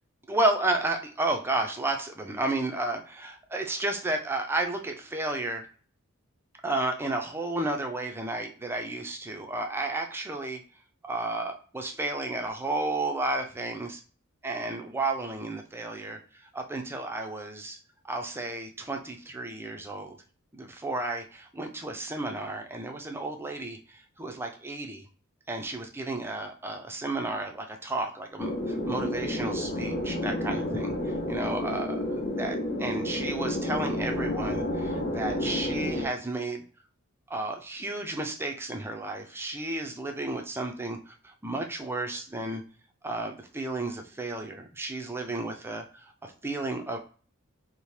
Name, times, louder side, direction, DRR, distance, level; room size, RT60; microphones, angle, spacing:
voice 1, 0.3-5.7 6.6-10.6 11.0-14.0 14.4-17.8 18.1-20.2 20.5-25.0 25.5-30.9 31.3-36.6 37.3-42.6 43.0-47.0, right 2 dB, 10° right, 3 dB, 0.4 m, -32 dB
sound 1, 28.4-36.1, left 1 dB, 45° left, 0.7 m, -30 dB
2.7 x 2.1 x 3.1 m, 0.40 s
head